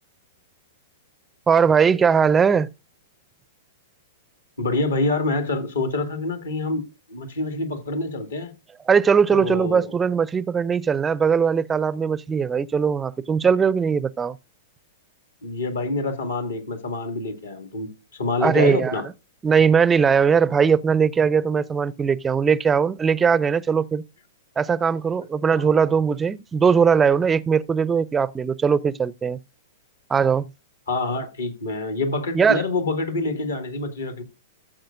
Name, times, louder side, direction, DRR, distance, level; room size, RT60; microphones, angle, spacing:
voice 1, 1.5-2.7 8.9-14.4 18.4-19.0 19.4-24.0 24.6-29.4 30.1-30.5 32.3-32.6, right 6 dB, 15° right, 0.4 m, -20 dB
voice 2, 4.6-6.8 7.1-8.5 9.3-9.9 15.4-19.0 25.6-25.7 30.9-34.2, left 2 dB, 70° left, 1.9 m, -26 dB
14.5 x 7.6 x 2.5 m
figure-of-eight pair, 105°, 0 cm